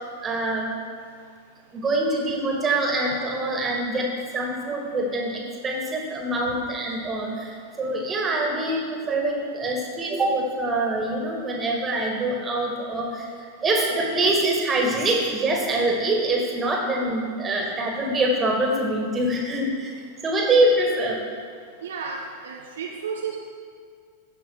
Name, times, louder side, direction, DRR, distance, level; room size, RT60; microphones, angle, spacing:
voice 1, 0.2-0.7 1.7-13.3 13.6-19.9 20.2-21.2, right 2 dB, 20° right, -1 dB, 2.2 m, -24 dB
voice 2, 21.8-23.4, right 6 dB, 65° right, 0 dB, 0.9 m, -32 dB
15.0 x 5.8 x 4.9 m, 2.1 s
figure-of-eight pair, 90°, 0 cm